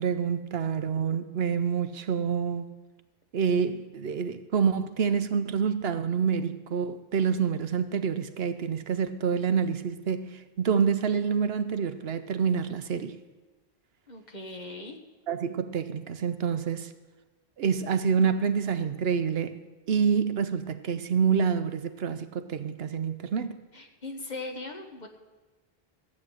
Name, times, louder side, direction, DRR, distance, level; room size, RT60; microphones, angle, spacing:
voice 1, 0.0-2.7 3.3-13.2 15.3-16.9 17.6-19.6 19.9-23.6, right 6 dB, 70° right, 0.9 m, -27 dB
voice 2, 14.1-15.0 23.7-25.1, left 2 dB, 45° left, 1.4 m, -39 dB
14.5 x 8.5 x 6.5 m
omnidirectional pair, 1.1 m